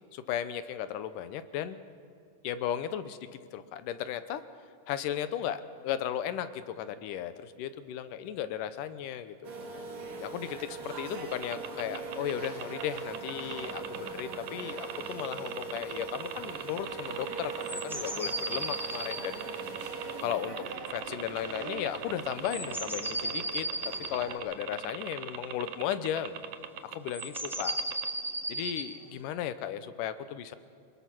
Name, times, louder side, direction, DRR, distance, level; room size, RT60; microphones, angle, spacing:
voice 1, 0.1-1.8 2.4-3.2 3.5-4.4 4.9-9.5 10.2-19.4 20.2-20.6 20.9-23.7 24.1-26.4 26.8-27.8 28.5-30.6, left 10 dB, 80° left, 12 dB, 2.4 m, -35 dB
sound 1, 9.4-24.4, right 3 dB, 55° right, 3.4 m, -41 dB
sound 2, 11.3-28.1, right 11 dB, 75° right, 2.2 m, -40 dB
sound 3, 17.6-20.4 22.5-24.1 27.1-28.9, right 1 dB, ahead, 0.8 m, -35 dB
23.5 x 21.0 x 6.1 m, 2.4 s
omnidirectional pair, 3.8 m